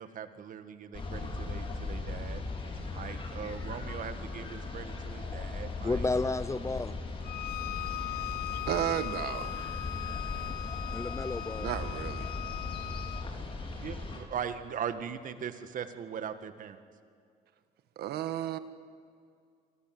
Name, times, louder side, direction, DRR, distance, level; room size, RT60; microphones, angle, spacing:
voice 1, 0.0-2.4 2.9-6.1 13.8-16.8, right 8 dB, 50° right, 9 dB, 1.9 m, -40 dB
sound 1, 0.9-14.2, left 3 dB, 30° left, 4.9 m, -38 dB
voice 2, 5.8-7.0 10.9-11.7, left 3 dB, 15° left, 16 dB, 0.6 m, -31 dB
Bowed string instrument, 7.2-13.3, left 15 dB, 60° left, 0.8 m, -39 dB
voice 3, 8.7-9.6 11.6-12.3 18.0-18.6, right 11 dB, 70° right, 11 dB, 1.5 m, -33 dB
28.0 x 25.0 x 7.9 m, 2.2 s
cardioid pair, 110°, 17 cm